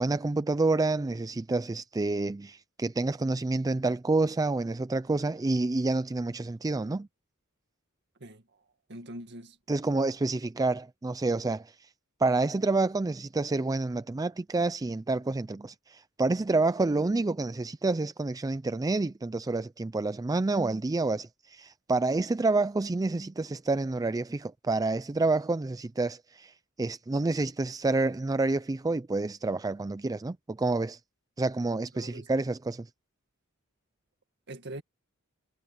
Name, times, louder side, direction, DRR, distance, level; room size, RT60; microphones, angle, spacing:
voice 1, 0.0-7.1 9.7-11.9 12.2-31.0 31.4-32.9, right 3 dB, 15° right, 0.4 m, -28 dB
voice 2, 8.2-8.6 8.9-9.6 31.9-32.3 34.5-34.8, right 1 dB, 55° right, 2.0 m, -43 dB
head